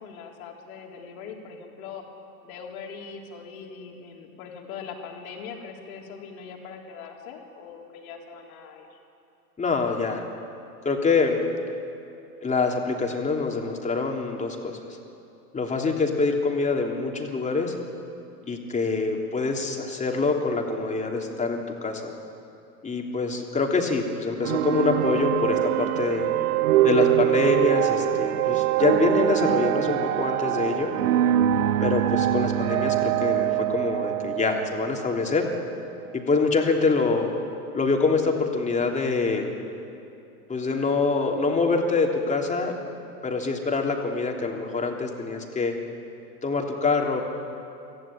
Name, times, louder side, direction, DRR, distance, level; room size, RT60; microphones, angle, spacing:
voice 1, 0.0-2.0 2.4-9.0, left 6 dB, 65° left, 1 dB, 4.0 m, -41 dB
voice 2, 9.6-10.2 10.8-11.4 12.4-14.8 15.5-17.7 18.4-22.1 22.8-26.3 26.8-30.9 31.8-35.5 36.1-37.3 37.7-39.5 40.5-42.8 43.2-45.7 46.4-47.2, left 4 dB, 15° left, 1 dB, 3.1 m, -25 dB
sound 1, 24.4-35.7, right 13 dB, 70° right, 0.9 m, -24 dB
25.5 x 15.5 x 9.0 m, 2.7 s
hypercardioid pair, 105°, 45 cm